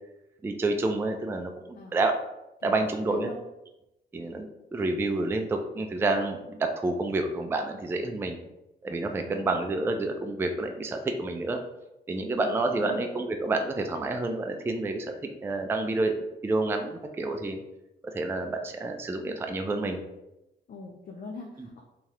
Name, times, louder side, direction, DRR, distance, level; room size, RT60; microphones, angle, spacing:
voice 1, 0.4-2.1 2.6-3.3 4.1-8.4 8.8-11.6 12.1-16.2 16.4-17.6 18.0-20.0 21.6-21.7, right 2 dB, 10° right, 5 dB, 0.3 m, -29 dB
voice 2, 2.6-3.4 9.1-9.7 12.4-12.5 12.8-13.0 20.7-21.8, left 3 dB, 50° left, 1 dB, 0.5 m, -42 dB
2.7 x 2.4 x 3.2 m, 0.92 s
cardioid pair, 75°, 19 cm